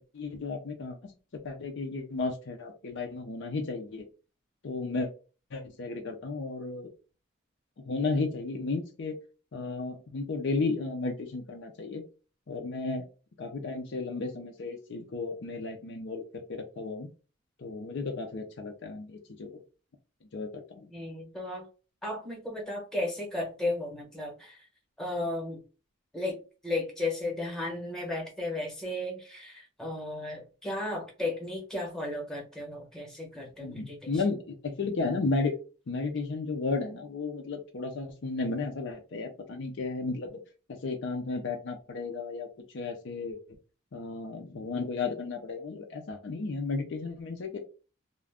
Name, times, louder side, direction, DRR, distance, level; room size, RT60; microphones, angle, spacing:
voice 1, 0.1-1.1 1.4-4.1 4.6-5.1 5.5-6.9 7.9-9.2 9.5-12.0 12.5-13.1 13.4-17.1 17.6-19.5 20.3-20.9 33.6-35.6 35.9-40.4 40.8-42.5 42.7-43.4 43.9-47.6, left 3 dB, 55° left, 3 dB, 0.5 m, -33 dB
voice 2, 20.9-21.7 22.0-24.6 25.0-25.6 26.1-34.2, left 2 dB, 5° left, 0 dB, 0.9 m, -34 dB
2.4 x 2.1 x 3.4 m, 0.34 s
head